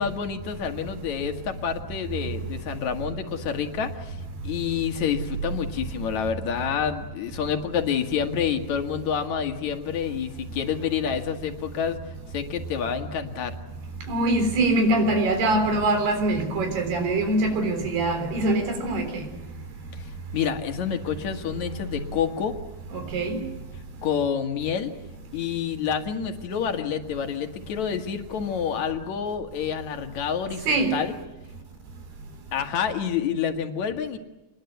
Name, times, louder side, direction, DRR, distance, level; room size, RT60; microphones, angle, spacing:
voice 1, 0.0-12.0 12.3-13.6 19.9-22.5 24.0-24.9 25.3-31.1 32.5-34.2, left 8 dB, 55° left, 2.9 m, -28 dB
voice 2, 14.1-19.3 22.9-23.4 30.7-31.0, right 2 dB, 80° right, 5.7 m, -23 dB
28.0 x 21.5 x 8.1 m
omnidirectional pair, 4.4 m